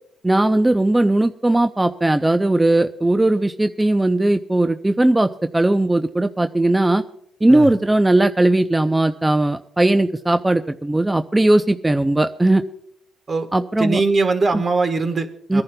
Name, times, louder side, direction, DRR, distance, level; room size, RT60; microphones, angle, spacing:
voice 1, 0.2-7.0 7.4-12.6 13.5-14.0 14.5-14.6 15.5-15.6, right 1 dB, 10° right, 9 dB, 0.5 m, -18 dB
voice 2, 13.8-15.6, right 3 dB, 40° right, 8 dB, 1.3 m, -21 dB
25.0 x 10.5 x 2.2 m, 0.72 s
cardioid pair, 90°, 0 cm